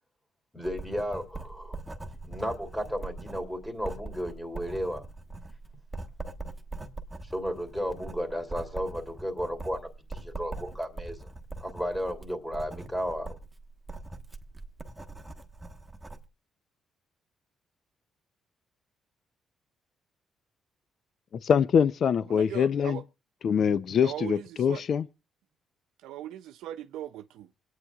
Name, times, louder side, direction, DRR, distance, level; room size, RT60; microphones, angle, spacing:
voice 1, 0.5-1.8 2.2-5.1 7.2-11.3 11.6-13.4, equal, 5° left, 3.0 m, -34 dB
Writing, 0.6-16.3, right 2 dB, 15° right, 1.3 m, -42 dB
voice 2, 21.3-23.0 23.4-25.0, left 7 dB, 60° left, 0.6 m, -24 dB
voice 3, 22.3-23.0 24.0-24.8 26.0-27.5, right 12 dB, 90° right, 0.6 m, -39 dB
25.5 x 9.3 x 2.4 m
cardioid pair, 90°, 0 cm